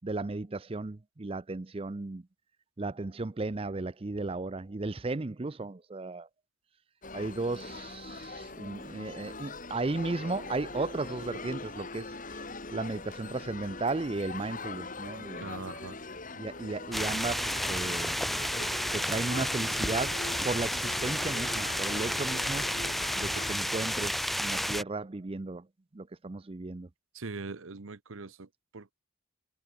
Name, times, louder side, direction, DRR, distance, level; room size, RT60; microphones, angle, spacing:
voice 1, 0.0-2.2 2.8-6.3 7.1-12.4 12.7-15.6 16.3-18.2 18.9-22.7 23.1-25.6 25.9-26.9, right 3 dB, 25° right, 0.5 m, -35 dB
sound 1, 7.0-23.6, left 3 dB, 40° left, 2.7 m, -42 dB
voice 2, 15.4-16.0 27.1-28.5 28.7-28.9, right 3 dB, 70° right, 0.9 m, -41 dB
sound 2, 16.9-24.8, equal, ahead, 1.1 m, -31 dB
head